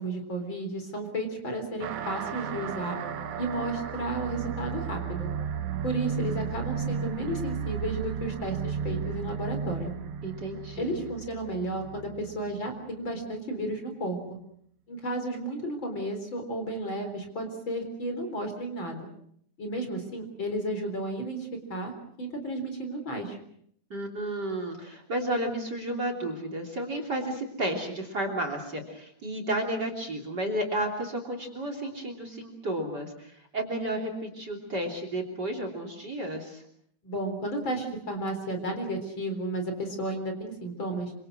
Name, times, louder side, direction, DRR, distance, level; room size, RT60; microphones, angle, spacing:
voice 1, 0.0-3.0 3.4-5.3 5.8-9.9 10.8-14.4 14.9-19.1 19.6-21.9 22.2-23.4 37.0-41.1, right 1 dB, 40° left, 5 dB, 4.5 m, -33 dB
sound 1, 1.8-12.8, right 7 dB, 75° right, 2.7 m, -34 dB
voice 2, 10.2-11.0 23.9-36.6, right 1 dB, 35° right, 5 dB, 3.8 m, -32 dB
27.0 x 25.5 x 6.3 m, 0.67 s
omnidirectional pair, 3.4 m